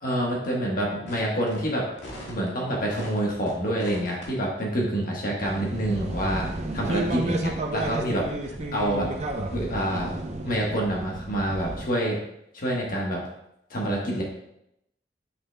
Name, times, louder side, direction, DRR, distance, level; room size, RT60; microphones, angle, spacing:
voice 1, 0.0-1.8 2.3-6.5 6.7-9.1 9.5-10.1 10.4-12.2 12.5-13.2 13.7-14.2, right 1 dB, 50° left, -2 dB, 1.3 m, -27 dB
sound 1, 1.1-1.2 1.5-1.6 2.0-2.5 2.9-3.5 3.8-4.2, left 1 dB, 85° left, 1.9 m, -40 dB
sound 2, 5.4-11.9, right 2 dB, 40° right, 0.6 m, -32 dB
8.0 x 6.5 x 2.2 m, 0.82 s
head